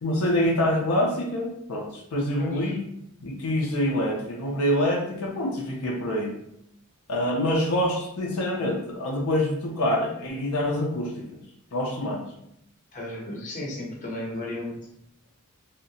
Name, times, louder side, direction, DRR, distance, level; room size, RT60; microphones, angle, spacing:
voice 1, 0.0-2.8 3.2-6.4 7.1-11.3 11.7-12.2, left 1 dB, 75° left, -1 dB, 0.5 m, -26 dB
voice 2, 2.4-2.8 12.9-14.8, left 1 dB, 35° left, -3 dB, 0.7 m, -34 dB
2.7 x 2.1 x 2.6 m, 0.77 s
head